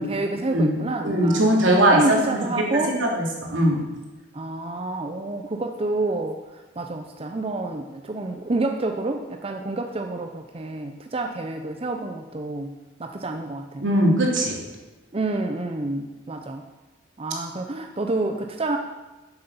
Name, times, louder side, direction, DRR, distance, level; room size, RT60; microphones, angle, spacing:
voice 1, 0.0-1.4 1.9-3.0 4.3-13.9 15.1-16.7 17.2-18.8, right 2 dB, 30° right, 5 dB, 0.7 m, -28 dB
voice 2, 1.0-2.4 2.7-3.2 3.5-3.8 13.8-14.6, right 1 dB, 80° right, -1 dB, 3.0 m, -20 dB
10.5 x 8.1 x 7.2 m, 1.1 s
head